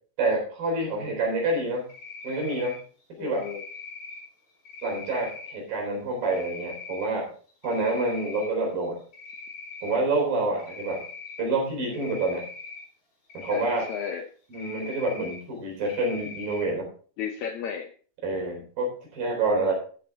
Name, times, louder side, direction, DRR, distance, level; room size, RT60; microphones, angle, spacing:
voice 1, 0.2-1.8 2.2-2.8 3.2-3.5 4.8-7.3 7.6-9.0 9.8-11.0 11.4-12.4 13.3-13.9 14.5-16.9 18.2-19.7, right 2 dB, 65° right, -1 dB, 5.6 m, -27 dB
Cricket, 1.9-2.8 3.3-4.2 4.6-5.5 6.2-7.0 7.5-8.5 8.8-10.0 10.6-11.4 11.9-12.8 13.3-14.1 14.5-15.3 15.8-16.6, left 4 dB, 40° left, 5.0 m, -41 dB
voice 2, 3.2-3.6 13.5-14.3 17.2-17.9 18.4-18.7, left 7 dB, 80° left, 5 dB, 1.7 m, -34 dB
13.0 x 8.0 x 3.6 m, 0.42 s
omnidirectional pair, 4.3 m